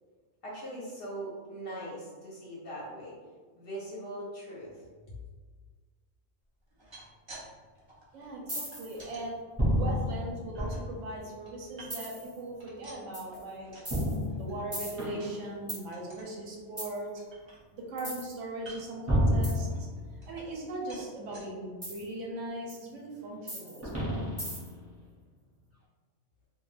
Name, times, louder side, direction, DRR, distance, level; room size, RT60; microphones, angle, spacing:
voice 1, 0.4-3.2 3.6-4.9, right 1 dB, 55° left, -6 dB, 0.7 m, -41 dB
sound 1, 6.6-7.5 7.7-9.2 9.8-10.8 11.2-12.2 12.5-14.0 14.3-14.6 14.9-15.0 15.4-15.6 15.9-16.3 16.8-16.9 17.2-18.0 18.6-19.0 19.6-20.6 20.9-21.5 22.1-22.2 22.5-22.6, right 2 dB, 50° right, 0.3 m, -51 dB
voice 2, 8.1-9.4 9.7-13.7 14.3-17.2 17.7-19.9 20.3-24.3, right 2 dB, 70° right, -1 dB, 0.9 m, -39 dB
sound 2, 8.5-9.0 9.6-11.1 11.9-12.3 13.1-13.4 13.8-15.8 16.8-17.0 18.0-18.3 19.1-20.2 21.8-22.0 22.7-22.8 23.5-24.8, equal, 15° right, 0.7 m, -30 dB
2.3 x 2.2 x 3.1 m, 1.5 s
omnidirectional pair, 1.4 m